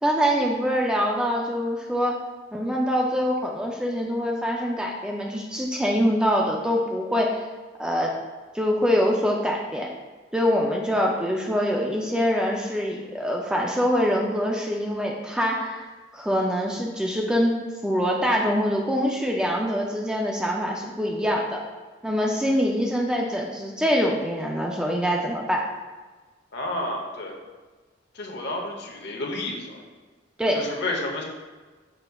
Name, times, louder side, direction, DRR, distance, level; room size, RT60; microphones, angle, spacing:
voice 1, 0.0-2.2 2.5-7.5 7.8-8.1 8.5-9.9 10.3-15.9 16.1-17.6 17.8-21.6 22.0-25.6 30.4-30.6, equal, 5° right, -1 dB, 0.3 m, -24 dB
voice 2, 26.5-27.3 28.2-29.8 30.5-31.2, left 2 dB, 60° left, 0 dB, 0.7 m, -30 dB
5.3 x 4.1 x 2.3 m, 1.3 s
head